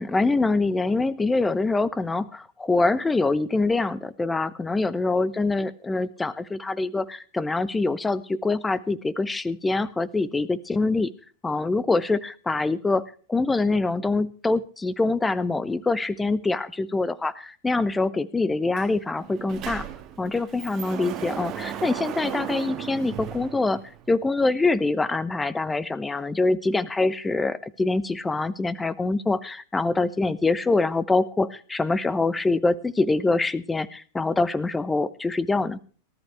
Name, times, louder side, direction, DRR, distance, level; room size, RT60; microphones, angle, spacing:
voice 1, 0.0-11.1 11.4-19.9 20.2-23.8 24.1-35.8, left 3 dB, 10° left, 18 dB, 0.9 m, -24 dB
Sliding door, 18.8-18.9 19.2-24.2, right 10 dB, 35° right, 1.6 m, -35 dB
18.5 x 13.5 x 3.4 m, 0.40 s
figure-of-eight pair, 90°, 0 cm